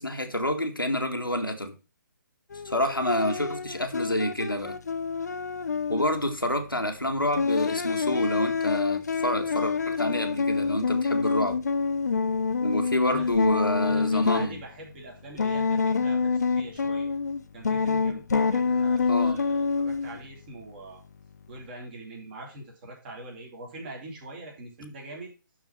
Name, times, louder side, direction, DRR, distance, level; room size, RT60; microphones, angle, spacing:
voice 1, 0.0-1.8 2.6-4.8 5.9-11.6 12.6-14.6 19.1-19.4, left 1 dB, 90° left, 2.0 m, -28 dB
sound 1, 2.5-6.4 7.3-14.5 15.4-17.4 17.6-20.2, left 5 dB, 50° left, 0.9 m, -27 dB
voice 2, 12.9-13.3 13.7-17.1 17.5-21.0 21.5-25.3, right 2 dB, 30° right, 3.6 m, -43 dB
12.0 x 4.5 x 6.0 m
figure-of-eight pair, 140°, 11 cm